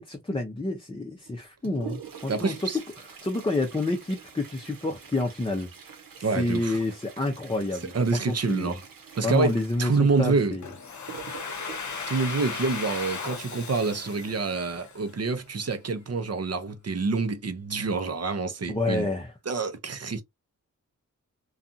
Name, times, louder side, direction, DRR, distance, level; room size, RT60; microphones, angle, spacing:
voice 1, 0.0-2.7 3.2-5.7 6.3-8.8 9.2-10.7 18.7-19.3, left 2 dB, 15° left, 0.6 m, -29 dB
Toilet flush, 1.2-13.2 15.1-15.2 15.5-15.6 16.4-16.5 17.2-17.4 17.8-18.0, right 7 dB, 90° right, 0.9 m, -45 dB
voice 2, 2.3-2.8 6.2-6.8 7.9-8.8 9.1-9.5 9.8-10.6 12.1-19.1 19.5-20.2, right 4 dB, 50° right, 0.7 m, -27 dB
Domestic sounds home sounds, 10.6-15.4, left 5 dB, 60° left, 0.8 m, -36 dB
2.6 x 2.3 x 2.5 m
wide cardioid pair, 60°, 33 cm